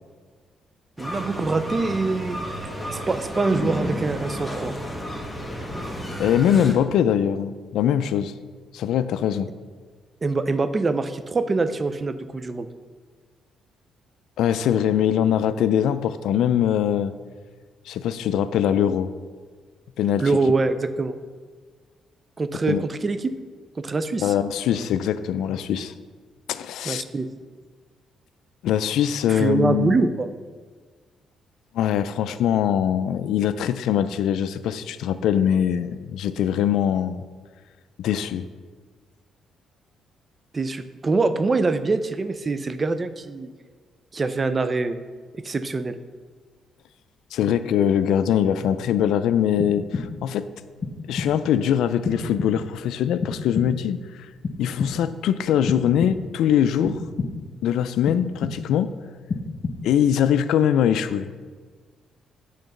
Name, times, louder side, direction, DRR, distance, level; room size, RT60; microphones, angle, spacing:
sound 1, 1.0-6.7, equal, 5° left, 1.4 m, -31 dB
voice 1, 1.0-4.7 10.2-12.7 20.2-21.2 22.4-23.3 23.8-24.3 26.9-27.3 29.3-30.3 40.5-43.5 44.1-45.0 45.3-46.0, right 3 dB, 30° right, 11 dB, 0.5 m, -24 dB
voice 2, 6.2-8.3 8.7-9.5 14.4-17.1 17.9-19.1 20.0-20.3 22.7-22.8 24.2-25.9 26.5-27.0 28.6-30.0 31.7-37.2 38.0-38.5 47.3-50.5 51.1-54.0 54.6-57.0 57.6-58.9 59.8-61.3, left 9 dB, 80° left, 13 dB, 0.3 m, -22 dB
sound 2, 49.6-50.4 50.8-51.5 52.1-52.8 53.2-54.0 54.4-55.3 55.7-56.5 56.8-57.6 58.1-58.9 59.3-60.1, left 4 dB, 45° left, 0.7 m, -31 dB
8.4 x 3.9 x 6.5 m, 1.5 s
cardioid pair, 90°, 0 cm